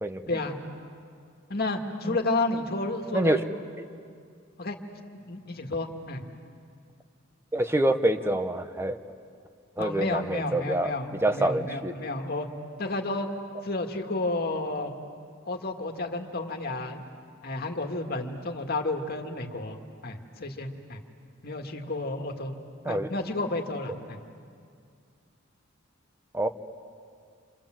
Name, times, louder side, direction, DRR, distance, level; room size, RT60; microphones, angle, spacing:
voice 1, 1.5-3.4 4.6-4.8 5.1-6.2 9.8-12.5 12.8-13.3 13.6-14.9 15.5-17.0 17.4-19.8 20.0-21.0 21.4-22.5 22.9-24.2, left 2 dB, 50° left, 4 dB, 1.8 m, -31 dB
voice 2, 7.5-9.0 9.8-10.9 11.2-11.9 22.8-23.1 26.3-26.5, right 1 dB, 10° right, 8 dB, 1.0 m, -26 dB
29.5 x 26.5 x 7.6 m, 2.2 s
head